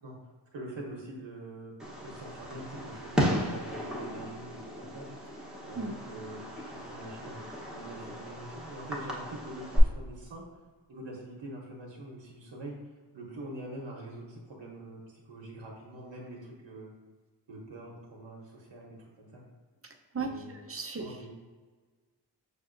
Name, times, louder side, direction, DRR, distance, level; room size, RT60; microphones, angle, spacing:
voice 1, 0.5-1.7 2.0-5.1 5.6-10.4 10.9-12.8 13.1-15.0 15.2-16.9 17.5-19.4 20.2-20.6 20.9-21.3, right 1 dB, 80° right, -2 dB, 0.8 m, -44 dB
Fireworks, 1.8-9.8, equal, ahead, 0.9 m, -35 dB
voice 2, 20.1-21.0, right 4 dB, 30° right, 3 dB, 0.5 m, -35 dB
6.3 x 2.6 x 2.5 m, 1.4 s
wide cardioid pair, 60°, 45 cm